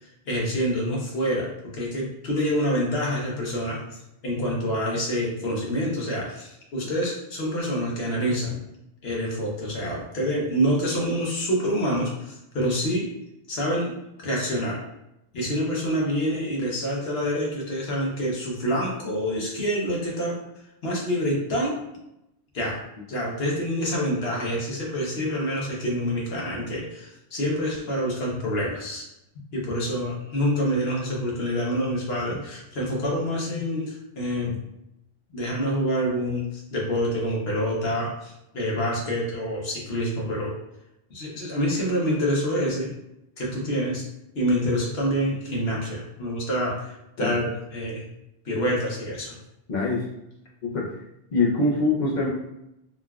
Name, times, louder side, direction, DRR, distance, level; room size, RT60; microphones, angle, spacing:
voice 1, 0.3-4.0 4.2-8.6 9.0-13.1 13.5-13.9 14.2-14.8 15.3-20.4 20.8-21.8 22.5-22.8 23.1-29.1 29.5-34.6 35.3-40.5 41.1-42.9 43.4-44.1 44.3-48.0 48.4-49.4, equal, 70° left, -3 dB, 1.1 m, -27 dB
voice 2, 49.7-50.1 50.6-50.9 51.3-52.3, left 3 dB, 50° left, -4 dB, 0.7 m, -23 dB
3.7 x 2.3 x 2.3 m, 0.86 s
omnidirectional pair, 1.1 m